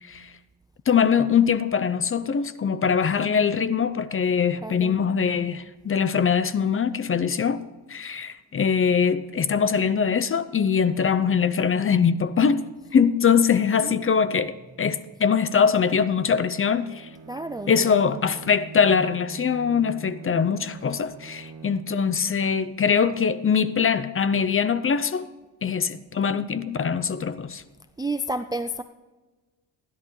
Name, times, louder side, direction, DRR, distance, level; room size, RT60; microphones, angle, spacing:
voice 1, 0.9-7.6 7.9-17.1 17.7-25.3 25.6-27.6, left 6 dB, 30° left, 0.6 m, -22 dB
voice 2, 4.6-5.0 13.8-14.0 17.3-18.3 28.0-28.8, right 1 dB, 10° right, 0.4 m, -31 dB
Bowed string instrument, 16.1-22.1, right 5 dB, 40° right, 1.9 m, -44 dB
15.5 x 11.0 x 3.2 m
cardioid pair, 95°, 47 cm